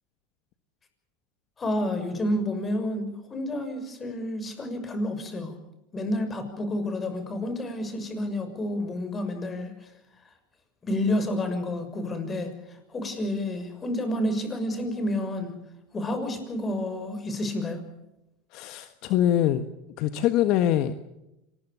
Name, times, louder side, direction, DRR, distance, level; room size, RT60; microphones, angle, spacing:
voice 1, 1.6-5.5 5.9-9.9 10.8-15.6 15.9-17.8, left 1 dB, 25° left, 8 dB, 6.4 m, -30 dB
voice 2, 18.5-19.7 20.0-20.9, left 11 dB, 55° left, 9 dB, 1.5 m, -23 dB
26.5 x 21.0 x 7.0 m, 0.90 s
hypercardioid pair, 105°, 0 cm